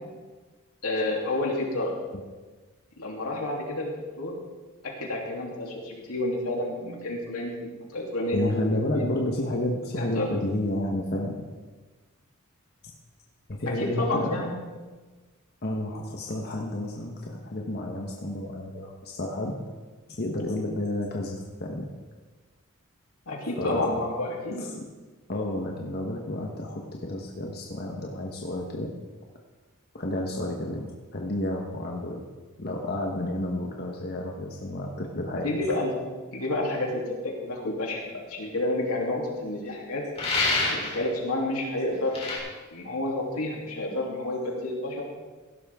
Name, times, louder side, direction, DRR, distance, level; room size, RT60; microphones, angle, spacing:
voice 1, 0.8-2.0 3.0-4.4 4.8-9.1 10.0-10.3 13.8-14.5 23.3-24.7 35.3-36.0 36.3-40.0 40.7-42.2 42.7-45.0, left 2 dB, 85° left, -2 dB, 3.1 m, -30 dB
voice 2, 8.3-11.4 13.5-14.4 15.6-19.5 20.2-21.8 23.6-23.9 24.6-24.7 25.3-28.9 29.9-32.3 32.6-35.5, left 1 dB, 45° left, 0 dB, 1.2 m, -31 dB
sound 1, 40.2-41.0 42.1-42.4, left 2 dB, 30° left, 3.7 m, -26 dB
16.5 x 11.5 x 3.7 m, 1.3 s
head